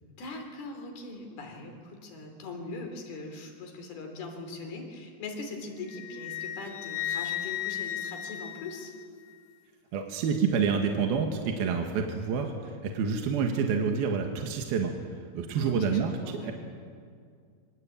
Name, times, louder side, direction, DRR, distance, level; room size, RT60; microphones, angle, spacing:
voice 1, 0.2-8.9 15.6-16.5, left 3 dB, 70° left, 4 dB, 5.4 m, -41 dB
Wind instrument woodwind instrument, 5.9-9.4, left 12 dB, 85° left, 3.6 m, -35 dB
voice 2, 9.9-14.9 15.3-16.1 16.4-16.5, right 6 dB, 70° right, 3 dB, 3.4 m, -28 dB
25.5 x 25.5 x 8.6 m, 2.2 s
omnidirectional pair, 4.7 m